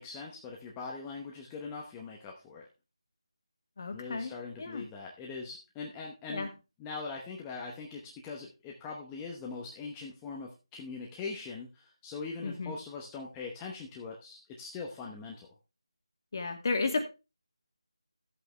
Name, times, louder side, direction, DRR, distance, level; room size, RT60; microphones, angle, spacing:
voice 1, 0.0-2.7 3.9-6.5 6.8-15.5, left 4 dB, 10° left, -1 dB, 0.9 m, -42 dB
voice 2, 3.8-4.3 4.6-4.9 6.3-6.5 12.4-12.7 16.3-17.0, left 3 dB, 40° left, 6 dB, 1.9 m, -32 dB
12.0 x 8.2 x 3.3 m, 0.28 s
figure-of-eight pair, 170°, 3 cm